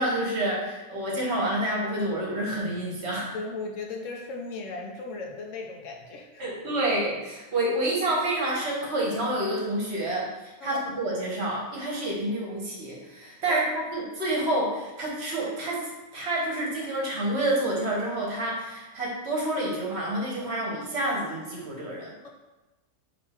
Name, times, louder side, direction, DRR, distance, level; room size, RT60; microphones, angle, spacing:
voice 1, 0.0-3.3 6.4-10.3 10.6-22.1, right 1 dB, 55° right, -3 dB, 1.1 m, -28 dB
voice 2, 3.3-6.5 10.6-10.9 13.5-13.7, left 3 dB, 70° left, 1 dB, 0.9 m, -37 dB
3.7 x 3.0 x 4.2 m, 1.1 s
omnidirectional pair, 1.5 m